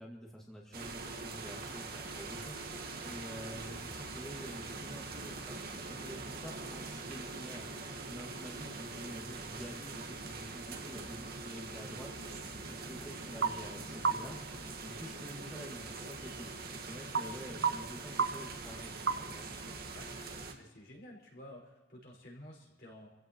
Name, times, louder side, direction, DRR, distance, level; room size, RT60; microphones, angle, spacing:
voice 1, 0.0-5.6 5.9-19.5, equal, 5° left, -3 dB, 2.0 m, -49 dB
sound 1, 0.7-20.5, right 3 dB, 55° right, 1.6 m, -43 dB
sound 2, 13.3-19.6, right 5 dB, 75° right, 0.8 m, -40 dB
voice 2, 19.9-23.1, left 1 dB, 60° left, -2 dB, 5.3 m, -53 dB
27.5 x 16.0 x 3.0 m, 1.2 s
head